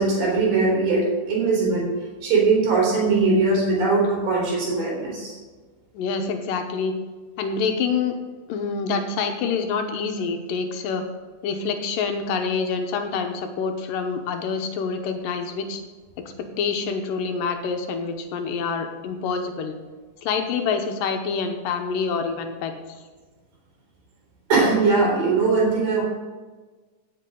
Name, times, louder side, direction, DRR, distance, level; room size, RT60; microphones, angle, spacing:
voice 1, 0.0-1.9 2.2-5.4 24.5-26.0, right 3 dB, 70° right, -3 dB, 5.4 m, -20 dB
voice 2, 5.9-7.0 7.4-8.2 8.5-11.0 11.4-15.8 16.4-19.8 20.2-22.8, left 5 dB, 80° left, 5 dB, 2.6 m, -26 dB
16.5 x 7.9 x 3.8 m, 1.3 s
omnidirectional pair, 4.0 m